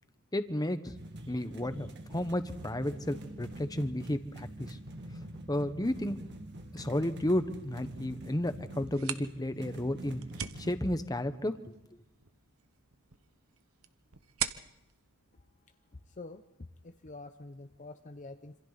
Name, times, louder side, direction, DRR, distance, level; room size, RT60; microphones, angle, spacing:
voice 1, 0.3-0.9 1.3-4.8 5.5-6.2 6.7-10.2 10.6-11.6, left 1 dB, 15° left, 10 dB, 1.2 m, -32 dB
sound 1, 1.0-10.8, right 1 dB, 50° right, 2.1 m, -46 dB
sound 2, 8.8-16.3, right 9 dB, 70° right, 1.1 m, -43 dB
voice 2, 15.9-18.6, left 2 dB, 35° left, 7 dB, 0.8 m, -47 dB
27.0 x 26.5 x 4.2 m, 0.90 s
head